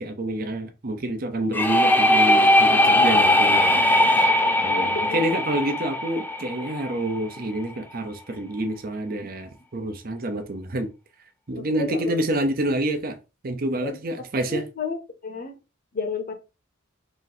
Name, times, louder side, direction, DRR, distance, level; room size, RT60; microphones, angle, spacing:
voice 1, 0.0-4.3 4.6-10.9 11.5-13.2 13.4-14.6, right 1 dB, 50° right, 0.7 m, -28 dB
sound 1, 1.5-7.2, left 1 dB, 10° left, 0.3 m, -19 dB
voice 2, 4.4-5.2 11.6-12.2 13.8-14.0 14.5-15.0 15.2-15.6 15.9-16.3, left 4 dB, 50° left, 0.8 m, -31 dB
3.0 x 2.7 x 3.9 m
head